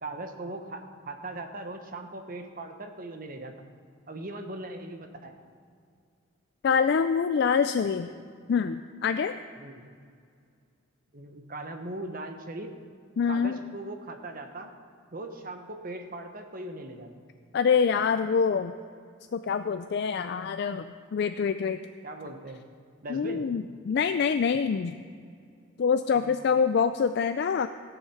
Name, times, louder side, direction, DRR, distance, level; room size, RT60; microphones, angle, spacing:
voice 1, 0.0-3.5 4.1-5.4 9.6-9.8 11.1-12.8 13.2-14.7 15.1-17.1 22.0-22.6 23.0-23.5 26.1-26.3, right 2 dB, 45° right, 6 dB, 1.1 m, -39 dB
voice 2, 6.6-8.1 8.5-9.4 13.2-13.6 17.5-18.7 19.3-21.8 23.1-25.0 25.8-27.7, left 6 dB, 55° left, 10 dB, 0.3 m, -25 dB
16.5 x 7.2 x 5.8 m, 2.2 s
head